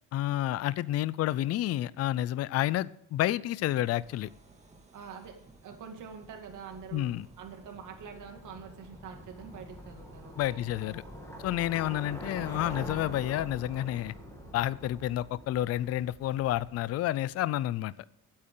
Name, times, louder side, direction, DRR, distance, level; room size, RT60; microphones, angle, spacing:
voice 1, 0.1-4.3 6.9-7.3 10.4-11.0 11.4-14.1 14.5-17.9, left 14 dB, 50° left, 19 dB, 0.4 m, -30 dB
sound 1, 3.6-13.5, right 3 dB, 20° right, 1.9 m, -57 dB
voice 2, 4.9-10.7, right 6 dB, 70° right, 3 dB, 2.3 m, -46 dB
Bicycle, 6.0-16.9, left 1 dB, 10° left, 2.5 m, -45 dB
22.0 x 8.7 x 3.7 m, 0.70 s
cardioid pair, 175°, 32 cm